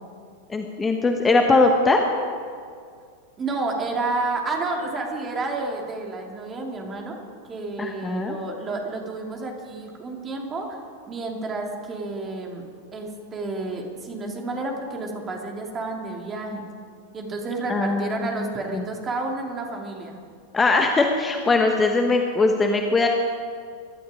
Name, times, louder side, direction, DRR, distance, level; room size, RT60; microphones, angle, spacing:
voice 1, 0.5-2.0 7.8-8.4 17.7-18.8 20.5-23.1, left 3 dB, 15° left, 3 dB, 1.2 m, -21 dB
voice 2, 3.4-7.2 7.4-10.8 11.0-16.7 17.1-20.2, right 3 dB, 20° right, 1 dB, 2.9 m, -30 dB
23.0 x 12.0 x 5.1 m, 2.2 s
figure-of-eight pair, 90°, 0 cm